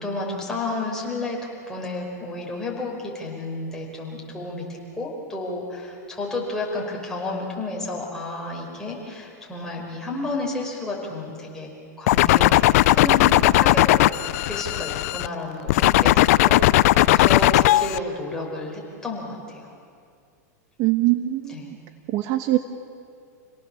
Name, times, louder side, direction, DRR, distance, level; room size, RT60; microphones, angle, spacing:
voice 1, 0.0-1.4 1.7-11.7 12.0-14.1 14.4-19.7 21.5-21.6, left 2 dB, 5° left, -3 dB, 5.1 m, -31 dB
sound 1, 12.1-15.3 15.7-18.0, left 17 dB, 60° left, 0.5 m, -17 dB
voice 2, 20.8-21.8 22.1-22.6, right 16 dB, 45° right, 8 dB, 1.1 m, -22 dB
27.5 x 18.0 x 7.2 m, 2.3 s
supercardioid pair, 140°, 9 cm